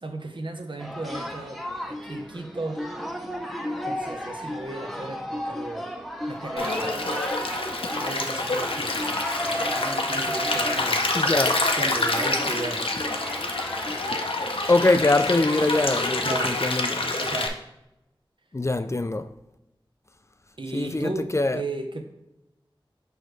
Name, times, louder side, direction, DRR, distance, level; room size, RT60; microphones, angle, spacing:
voice 1, 0.0-2.8 3.8-5.9 6.3-7.0 7.9-11.0 11.7-12.8 16.2-16.6 17.2-17.6 20.6-22.0, right 2 dB, 65° right, 0.8 m, -35 dB
sound 1, 0.8-14.0, equal, ahead, 0.7 m, -34 dB
Stream, 6.6-17.5, left 2 dB, 85° left, 0.6 m, -27 dB
voice 2, 11.1-11.6 14.7-17.1 18.5-19.3 20.7-21.6, left 2 dB, 30° left, 0.3 m, -23 dB
6.2 x 5.0 x 3.2 m
wide cardioid pair, 50°, 9 cm